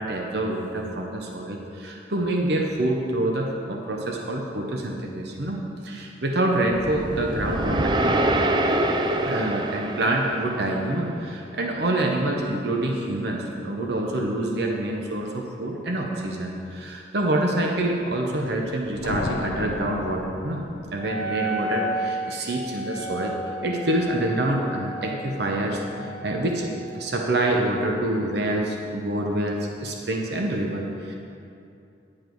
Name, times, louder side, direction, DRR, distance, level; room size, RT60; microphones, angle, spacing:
voice 1, 0.0-8.2 9.2-20.6 20.9-23.3 23.6-31.1, right 1 dB, 60° right, 0 dB, 0.9 m, -26 dB
sound 1, 6.7-11.0, right 1 dB, 25° right, 0.4 m, -25 dB
sound 2, 18.6-21.2, left 3 dB, 80° left, 0.6 m, -33 dB
Wind instrument woodwind instrument, 21.0-26.8, right 1 dB, 40° left, 0.9 m, -33 dB
10.5 x 7.5 x 4.6 m, 2.6 s
head